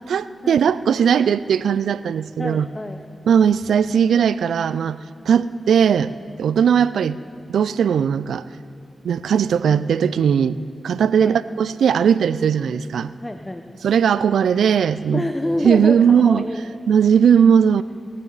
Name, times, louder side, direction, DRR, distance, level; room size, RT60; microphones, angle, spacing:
voice 1, 0.1-2.7 3.3-5.0 5.3-6.1 6.4-7.2 7.5-8.4 9.0-13.1 13.8-15.2 15.6-16.4 16.9-17.8, right 7 dB, 85° right, 16 dB, 0.3 m, -18 dB
voice 2, 2.4-3.0 11.2-11.4 12.4-12.5 13.2-13.7 15.1-16.6, left 1 dB, 20° left, 6 dB, 0.9 m, -27 dB
20.0 x 15.0 x 4.1 m, 2.4 s
supercardioid pair, 40°, 0 cm